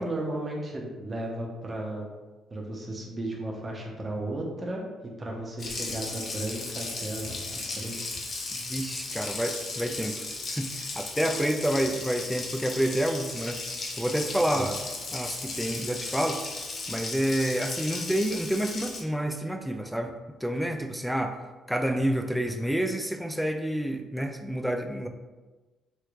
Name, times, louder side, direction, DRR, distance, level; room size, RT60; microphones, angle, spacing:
voice 1, 0.0-2.1 2.5-7.9 14.5-14.7, right 1 dB, 35° right, -1 dB, 0.8 m, -34 dB
Water tap faucet, 5.6-19.0, left 3 dB, 55° left, 0.6 m, -36 dB
voice 2, 8.7-13.6 14.0-14.8 15.1-16.4 16.9-20.1 20.4-21.4 21.7-25.1, right 1 dB, ahead, 5 dB, 0.4 m, -28 dB
3.1 x 3.1 x 2.4 m, 1.2 s
hypercardioid pair, 50°, 0 cm